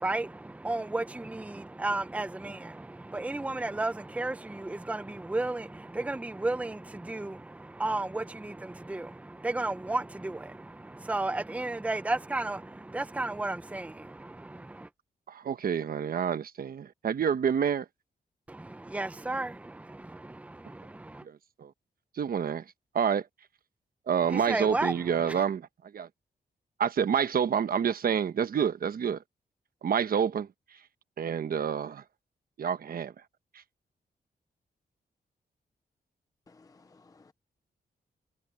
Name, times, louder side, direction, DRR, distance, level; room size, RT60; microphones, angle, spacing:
voice 1, 0.0-14.9 18.5-21.3 24.3-25.0 25.3-25.4, right 2 dB, 10° right, 0.8 m, -33 dB
voice 2, 15.3-17.9 21.2-21.7 22.1-23.3 24.1-26.1 26.8-29.2 29.8-30.8 31.2-32.0 32.6-33.1 33.5-33.6, right 7 dB, 60° right, 1.1 m, -28 dB
voice 3, 36.5-37.3, left 3 dB, 20° left, 0.5 m, -58 dB
wide cardioid pair, 155°, 17 cm